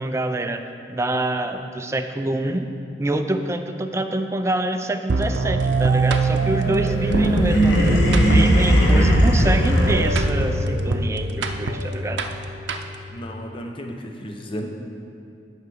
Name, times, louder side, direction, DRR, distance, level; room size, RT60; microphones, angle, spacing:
voice 1, 0.0-2.7 3.0-12.2, right 1 dB, 15° right, 7 dB, 0.4 m, -26 dB
sound 1, 5.1-13.2, right 3 dB, 85° right, 0.6 m, -24 dB
sound 2, 6.3-10.5, equal, 75° left, 1.2 m, -18 dB
voice 2, 13.1-14.7, equal, 30° left, 2 dB, 0.7 m, -33 dB
9.6 x 4.8 x 6.2 m, 2.6 s
head